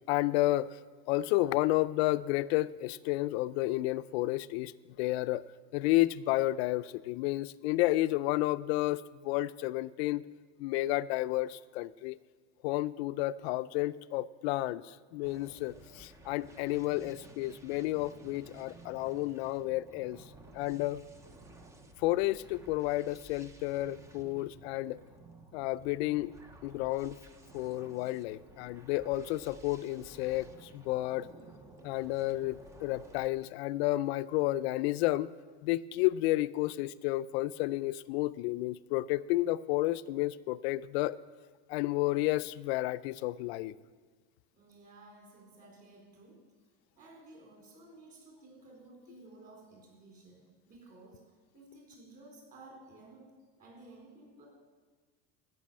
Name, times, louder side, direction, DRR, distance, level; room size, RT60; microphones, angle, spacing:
voice 1, 0.1-0.8 1.1-5.5 5.7-10.3 10.6-12.2 12.6-20.2 20.5-21.0 22.0-25.0 25.5-26.3 26.6-27.2 27.5-31.3 31.8-35.3 35.6-41.2 41.7-43.7, left 17 dB, 65° left, 16 dB, 0.5 m, -31 dB
sound 1, 15.2-33.3, right 2 dB, 10° right, 0.4 m, -54 dB
voice 2, 44.5-46.4 46.9-53.3 53.6-54.5, right 2 dB, 25° right, -1 dB, 3.9 m, -55 dB
13.5 x 6.2 x 8.7 m, 1.5 s
cardioid pair, 165°, 35 cm